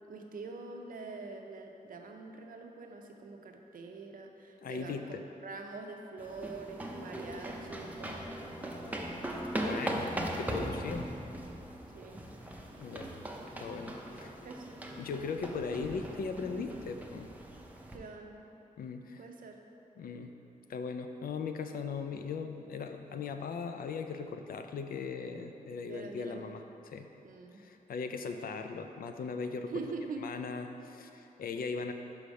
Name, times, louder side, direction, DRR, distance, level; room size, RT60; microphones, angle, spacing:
voice 1, 0.1-8.2 11.9-12.2 14.2-14.8 17.9-18.4 19.2-19.6 25.9-26.6 27.2-27.6 29.7-30.2, right 3 dB, 70° right, 3 dB, 0.6 m, -44 dB
voice 2, 4.6-5.2 9.6-11.1 12.8-13.1 13.6-14.3 14.9-17.3 18.8-19.2 20.0-20.3 20.7-27.1 27.6-29.7 30.2-31.9, left 5 dB, 80° left, 6 dB, 0.4 m, -39 dB
sound 1, 6.2-18.0, right 1 dB, 10° right, 0.5 m, -39 dB
5.6 x 4.9 x 5.2 m, 2.9 s
wide cardioid pair, 155°, 15 cm